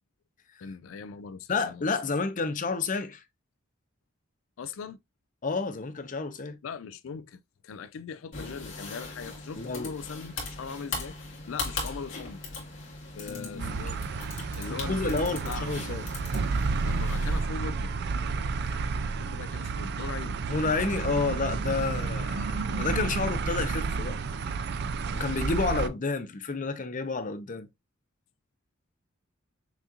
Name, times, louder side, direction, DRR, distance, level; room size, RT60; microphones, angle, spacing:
voice 1, 0.6-1.9 4.6-5.0 6.6-11.2 11.5-12.4 13.2-14.0 14.5-15.9 16.8-18.0 19.2-20.4, left 5 dB, 85° left, 0.4 m, -40 dB
voice 2, 1.5-3.2 5.4-6.6 9.6-9.9 13.2-13.9 14.7-16.0 18.7-18.8 20.5-24.2 25.1-27.7, left 4 dB, 40° left, 0.6 m, -30 dB
sound 1, 8.3-17.4, left 3 dB, 65° left, 2.1 m, -39 dB
sound 2, 13.6-25.9, right 4 dB, 55° right, 0.4 m, -31 dB
6.0 x 2.8 x 2.5 m
head